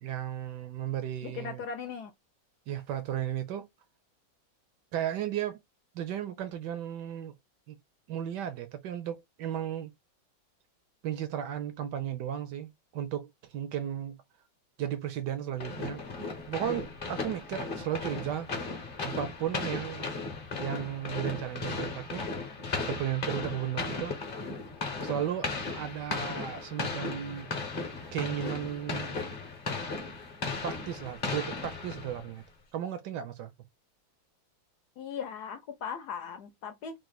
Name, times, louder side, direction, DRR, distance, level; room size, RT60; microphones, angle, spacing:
voice 1, 0.0-1.6 2.7-3.7 4.9-5.6 5.9-7.3 7.7-7.8 8.1-9.9 11.0-14.2 14.8-16.0 16.5-18.5 19.0-20.1 20.6-22.3 22.7-24.2 25.0-27.5 28.1-29.2 30.6-32.4 32.7-33.5, right 10 dB, 70° right, 1.1 m, -35 dB
voice 2, 1.2-2.1 35.0-37.0, left 6 dB, 70° left, 1.0 m, -38 dB
sound 1, 15.6-32.4, left 3 dB, 35° left, 0.9 m, -36 dB
3.7 x 2.4 x 4.0 m
omnidirectional pair, 2.1 m